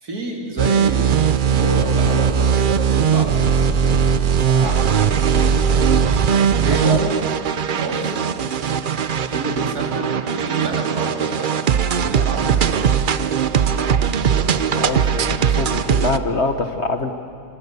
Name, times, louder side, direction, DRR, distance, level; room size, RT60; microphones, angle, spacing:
voice 1, 0.0-4.9 6.6-7.2 7.7-8.3 9.3-11.5 12.0-12.8, right 1 dB, 60° right, -1 dB, 4.2 m, -28 dB
sound 1, 0.6-16.2, right 7 dB, 85° right, 0.4 m, -19 dB
voice 2, 14.7-17.1, left 3 dB, 45° left, 7 dB, 1.3 m, -24 dB
26.5 x 25.5 x 6.9 m, 2.7 s
omnidirectional pair, 1.8 m